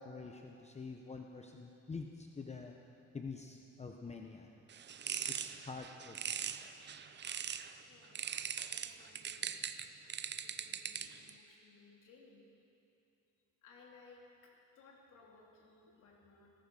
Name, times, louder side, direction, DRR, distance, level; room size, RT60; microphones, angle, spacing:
voice 1, 0.0-2.7 3.1-4.5 4.8-4.9 5.3-6.2 6.4-7.0, left 4 dB, 20° left, 2 dB, 0.8 m, -47 dB
sound 1, 4.7-7.7 8.2-11.3, right 8 dB, 35° right, 0.5 m, -41 dB
voice 2, 7.8-8.3 8.7-9.9 10.4-12.4 13.6-16.5, left 4 dB, 80° left, -2 dB, 3.0 m, -62 dB
17.5 x 14.5 x 5.4 m, 2.8 s
cardioid pair, 135°, 31 cm